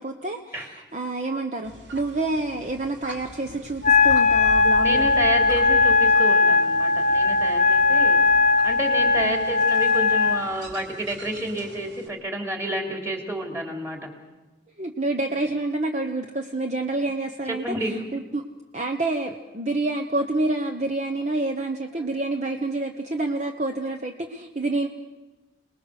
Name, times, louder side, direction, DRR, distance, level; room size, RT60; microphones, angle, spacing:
voice 1, 0.0-5.1 9.2-9.5 14.8-18.4 18.7-24.9, right 2 dB, 40° right, 5 dB, 1.1 m, -28 dB
sound 1, 1.6-12.1, equal, 80° right, 3.0 m, -42 dB
Wind instrument woodwind instrument, 3.8-10.4, left 4 dB, 40° left, 1.0 m, -19 dB
voice 2, 4.8-8.2 8.6-14.1 17.5-18.0, right 1 dB, 15° right, 2 dB, 3.3 m, -30 dB
28.5 x 20.5 x 6.6 m, 1.2 s
head